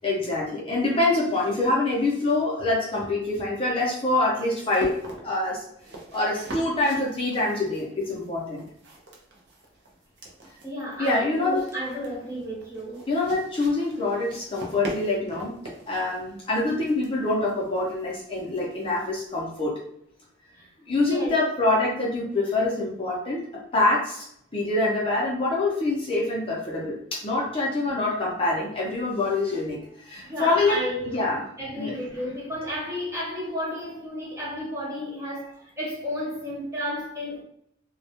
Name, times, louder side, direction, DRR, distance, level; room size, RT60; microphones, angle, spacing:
voice 1, 0.0-5.0 5.2-5.6 6.1-8.6 11.0-11.6 13.1-15.5 15.9-19.7 20.9-23.5 23.7-24.2 24.5-29.8 30.1-30.8 31.1-31.4 31.8-31.9, left 2 dB, 30° left, -3 dB, 0.5 m, -25 dB
sound 1, 3.2-19.5, right 1 dB, 65° right, 0.5 m, -43 dB
voice 2, 10.6-13.0 20.5-20.7 21.0-21.4 27.8-27.9 30.1-31.3 31.6-37.4, equal, 15° right, -5 dB, 0.6 m, -32 dB
2.2 x 2.1 x 2.7 m, 0.71 s
head